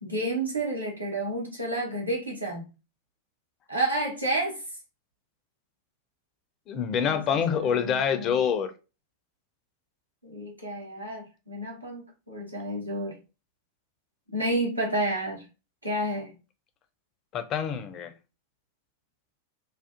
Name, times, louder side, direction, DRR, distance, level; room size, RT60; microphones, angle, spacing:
voice 1, 0.0-2.7 3.7-4.6 7.0-8.4 10.2-13.2 14.3-15.4 15.8-16.3, right 1 dB, 85° right, 1.0 m, -30 dB
voice 2, 6.7-8.7 17.3-18.1, left 7 dB, 35° left, 0.4 m, -26 dB
2.5 x 2.3 x 2.4 m
figure-of-eight pair, 90°, 0 cm